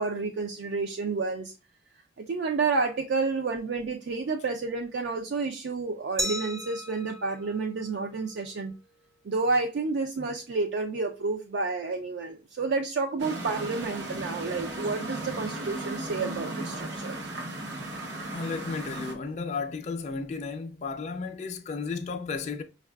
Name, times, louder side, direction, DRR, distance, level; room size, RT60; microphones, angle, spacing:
voice 1, 0.0-1.5 2.3-8.7 9.2-17.2, right 4 dB, 70° right, 0.4 m, -30 dB
Glass, 6.2-8.9, right 1 dB, 15° right, 0.5 m, -37 dB
sound 1, 13.2-19.1, right 2 dB, 85° right, 0.8 m, -36 dB
voice 2, 18.3-22.6, left 4 dB, 40° left, 0.4 m, -33 dB
5.3 x 2.3 x 2.2 m
head